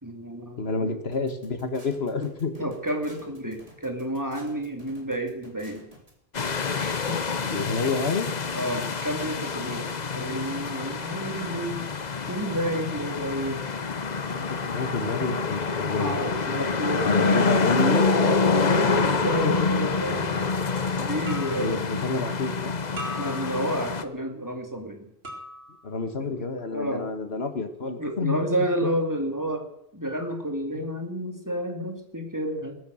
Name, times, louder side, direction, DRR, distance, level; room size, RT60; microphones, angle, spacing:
voice 1, 0.0-1.0 2.2-2.3 2.6-5.8 6.8-7.2 8.5-11.8 12.3-13.6 16.0-17.6 18.5-20.4 21.0-21.8 23.2-25.1 26.2-26.5 26.7-27.1 27.8-29.7 29.9-32.8, right 1 dB, 20° right, 3 dB, 2.6 m, -30 dB
voice 2, 0.6-2.5 7.4-8.3 14.3-16.1 17.0-19.7 21.5-22.8 25.8-28.4, left 4 dB, 80° left, 8 dB, 1.8 m, -29 dB
sound 1, 1.1-6.1, right 1 dB, 35° right, 3.9 m, -51 dB
sound 2, 6.3-24.0, left 4 dB, 45° left, 1.0 m, -27 dB
sound 3, 21.3-21.8 23.0-23.8 25.2-25.9, left 1 dB, 70° right, 4.5 m, -39 dB
21.5 x 10.0 x 6.4 m, 0.74 s
omnidirectional pair, 1.0 m